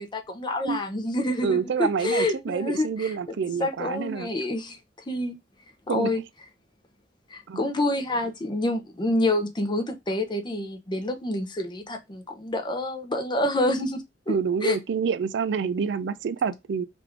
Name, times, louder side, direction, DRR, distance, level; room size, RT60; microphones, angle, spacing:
voice 1, 0.0-4.8 5.1-5.4 5.9-6.2 7.3-14.3 14.6-14.8, left 1 dB, 25° left, 0.6 m, -27 dB
voice 2, 1.4-4.3 5.9-6.1 7.5-7.6 14.3-16.9, right 6 dB, 65° right, 0.4 m, -27 dB
3.5 x 2.5 x 4.4 m
head